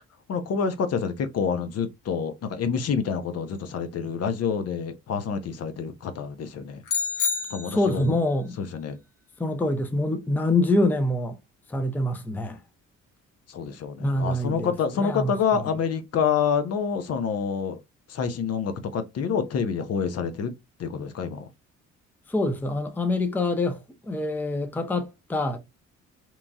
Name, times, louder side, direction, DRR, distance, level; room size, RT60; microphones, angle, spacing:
voice 1, 0.3-6.8 7.5-8.1 8.6-9.0 13.5-17.8 18.1-20.5 20.8-21.5, left 6 dB, 55° left, 0.6 m, -27 dB
sound 1, 6.9-8.2, left 5 dB, 80° left, 0.9 m, -28 dB
voice 2, 7.7-8.6 9.4-11.4 11.7-12.6 14.0-15.3 22.3-25.6, left 2 dB, 5° left, 0.5 m, -25 dB
3.0 x 2.3 x 2.5 m
cardioid pair, 90°, 30 cm